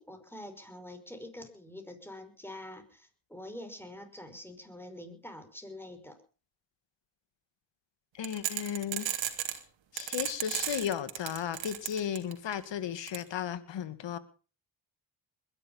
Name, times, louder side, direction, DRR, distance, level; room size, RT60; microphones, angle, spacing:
voice 1, 0.0-6.2, left 1 dB, 5° left, 7 dB, 5.6 m, -46 dB
voice 2, 8.1-9.1 9.9-14.2, left 9 dB, 65° left, 13 dB, 2.0 m, -35 dB
sound 1, 8.2-9.6 10.0-12.5 13.1-13.2, right 10 dB, 70° right, 2.9 m, -33 dB
21.5 x 11.5 x 5.6 m, 0.38 s
supercardioid pair, 60°, 47 cm